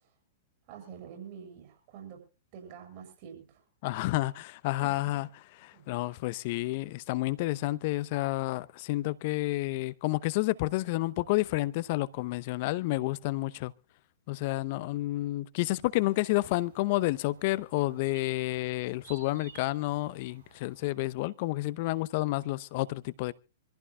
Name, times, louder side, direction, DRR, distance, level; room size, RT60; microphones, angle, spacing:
voice 1, 0.7-2.2 2.5-3.6 4.8-5.2 5.7-5.9, right 8 dB, 45° right, 7.9 m, -47 dB
voice 2, 3.8-5.3 5.6-13.7 14.3-23.3, left 19 dB, 50° left, 0.8 m, -30 dB
sound 1, 16.0-20.9, right 6 dB, 75° right, 3.6 m, -56 dB
25.5 x 15.5 x 2.3 m
figure-of-eight pair, 105°, 0 cm